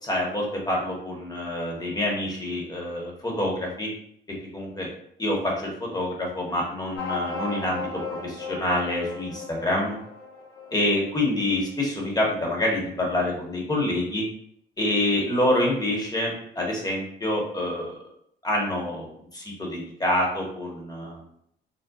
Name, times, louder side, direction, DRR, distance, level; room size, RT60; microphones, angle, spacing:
voice 1, 0.0-3.9 4.5-4.9 5.2-7.9 8.2-10.0 10.7-14.2 14.8-18.0 18.4-21.2, left 1 dB, 20° left, -1 dB, 1.0 m, -27 dB
sound 1, 6.9-11.9, left 3 dB, 80° left, 1.1 m, -36 dB
3.9 x 2.1 x 2.3 m, 0.70 s
cardioid pair, 90°, 20 cm